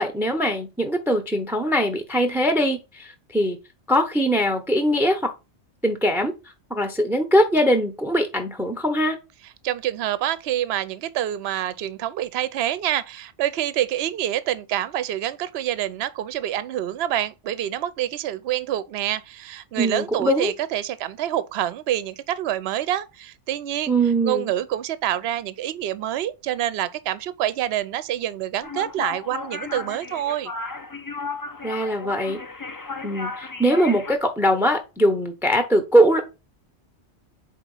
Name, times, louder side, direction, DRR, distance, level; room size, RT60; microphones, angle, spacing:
voice 1, 0.0-3.6 3.9-5.3 5.8-6.3 6.7-9.2 19.8-20.5 23.9-24.5 31.6-32.4 33.0-36.2, equal, ahead, 0.6 m, -21 dB
voice 2, 9.6-23.9 24.2-30.5, right 12 dB, 65° right, 0.8 m, -27 dB
sound 1, 28.6-34.1, left 3 dB, 30° left, 0.3 m, -34 dB
4.5 x 4.1 x 5.4 m
omnidirectional pair, 1.2 m